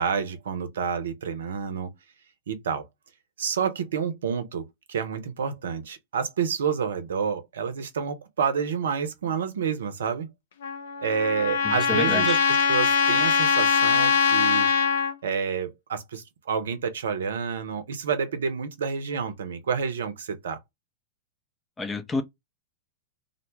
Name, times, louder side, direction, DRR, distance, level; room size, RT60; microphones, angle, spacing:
voice 1, 0.0-1.9 2.5-2.8 3.4-10.3 11.0-14.7 15.2-20.6, right 6 dB, 70° right, 0.6 m, -29 dB
Trumpet, 10.6-15.1, left 6 dB, 65° left, 0.5 m, -22 dB
voice 2, 11.6-12.4 21.8-22.2, left 3 dB, 15° left, 0.5 m, -29 dB
2.5 x 2.2 x 2.9 m
figure-of-eight pair, 95°, 0 cm